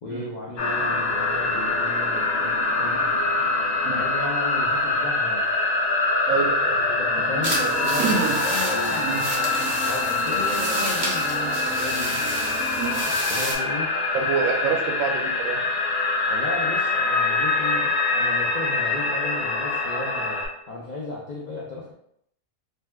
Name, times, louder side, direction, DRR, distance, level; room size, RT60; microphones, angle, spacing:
voice 1, 0.0-3.1 3.9-5.5 6.9-12.2 13.3-14.0 16.3-21.9, left 2 dB, 65° left, -5 dB, 0.4 m, -35 dB
sound 1, 0.6-20.5, left 3 dB, 85° left, 1.1 m, -24 dB
voice 2, 6.3-7.0 8.0-8.4 9.0-9.2 12.7-13.0 14.1-15.6, right 5 dB, 80° right, 4 dB, 1.0 m, -27 dB
sound 2, 7.1-13.0, equal, 50° right, 0.8 m, -37 dB
sound 3, 7.4-13.5, right 1 dB, 30° right, 0.4 m, -31 dB
2.7 x 2.2 x 3.3 m, 0.72 s
omnidirectional pair, 1.4 m